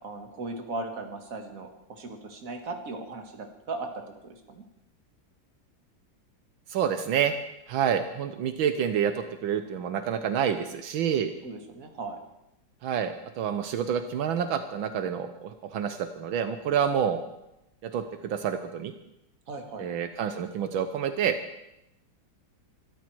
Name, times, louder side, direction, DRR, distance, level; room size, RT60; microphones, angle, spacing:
voice 1, 0.0-3.9 4.2-4.6 11.4-12.2 19.5-19.9, right 3 dB, 45° right, 5 dB, 2.2 m, -37 dB
voice 2, 6.7-7.3 7.7-11.3 12.8-17.2 17.8-18.9 19.8-21.4, right 8 dB, 80° right, 9 dB, 1.7 m, -28 dB
24.0 x 13.0 x 4.6 m, 0.87 s
omnidirectional pair, 2.1 m